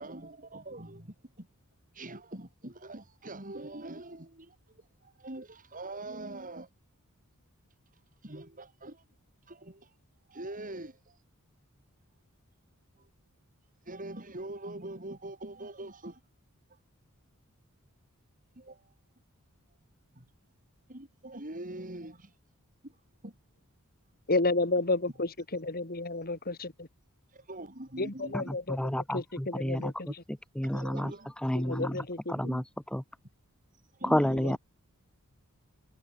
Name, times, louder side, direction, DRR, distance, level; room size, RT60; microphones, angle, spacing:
voice 1, 0.0-1.5 1.9-6.7 8.2-9.0 9.5-9.9 10.3-11.2 13.0-13.1 13.9-16.2 18.5-18.9 20.1-20.3 20.9-22.3 22.8-23.0 23.2-23.3 27.3-28.5 29.8-29.9 30.7-31.3 32.3-32.6 34.0-34.6, right 1 dB, 35° right, 4.4 m, -43 dB
voice 2, 24.3-26.9 28.0-30.1 31.5-32.5 34.3-34.6, left 2 dB, 45° left, 2.8 m, -32 dB
voice 3, 28.7-29.9 30.6-31.1 31.4-32.0 32.3-32.6 32.9-33.0 34.0-34.6, equal, 5° left, 0.7 m, -29 dB
head